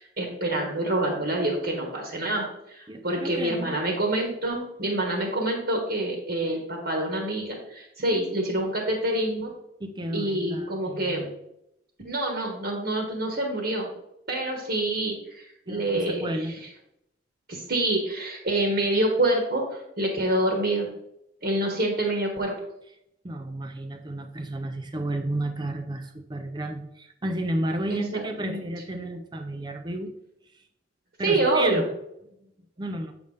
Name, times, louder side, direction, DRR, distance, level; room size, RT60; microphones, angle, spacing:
voice 1, 0.0-9.5 10.1-11.2 12.0-13.9 14.3-16.2 17.5-20.9 21.4-22.5 27.9-28.6 31.2-31.8, right 1 dB, 50° right, 1 dB, 1.3 m, -27 dB
voice 2, 2.9-3.8 9.8-11.4 15.7-16.5 23.2-30.1 30.5-30.6 31.2-31.8 32.8-33.1, right 1 dB, 20° right, 6 dB, 0.5 m, -32 dB
8.0 x 5.4 x 3.3 m, 0.80 s
head